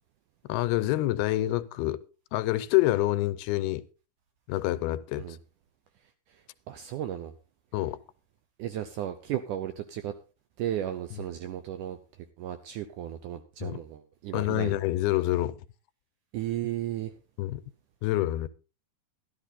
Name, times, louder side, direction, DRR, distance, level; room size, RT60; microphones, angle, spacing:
voice 1, 0.5-2.0 2.3-3.8 4.5-5.4 7.7-8.0 11.1-11.2 13.6-13.8 14.3-15.6 17.4-17.6 18.0-18.5, left 16 dB, 85° left, 2.7 m, -27 dB
voice 2, 6.7-7.3 8.6-10.1 10.6-12.0 12.4-14.8 16.3-17.1, right 11 dB, 80° right, 1.9 m, -34 dB
12.5 x 12.0 x 4.1 m
omnidirectional pair, 4.4 m